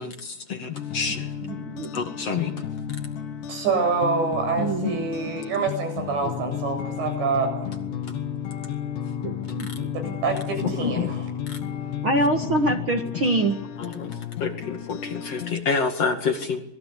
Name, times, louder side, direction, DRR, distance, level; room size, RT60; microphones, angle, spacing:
voice 1, 0.0-1.3 1.9-2.6 4.8-4.9 9.6-9.7 10.7-11.1 11.5-11.6 13.8-16.6, left 5 dB, 45° left, 5 dB, 2.5 m, -28 dB
sound 1, 0.7-15.5, left 9 dB, 75° left, 4.2 m, -32 dB
voice 2, 1.5-1.9 4.6-5.1 9.2-10.1 10.6-10.7 12.0-13.6, right 2 dB, 50° right, 4 dB, 1.6 m, -25 dB
voice 3, 3.5-7.7 9.9-11.2, right 4 dB, 75° right, 5 dB, 9.9 m, -26 dB
26.5 x 21.5 x 8.5 m, 0.84 s
omnidirectional pair, 5.1 m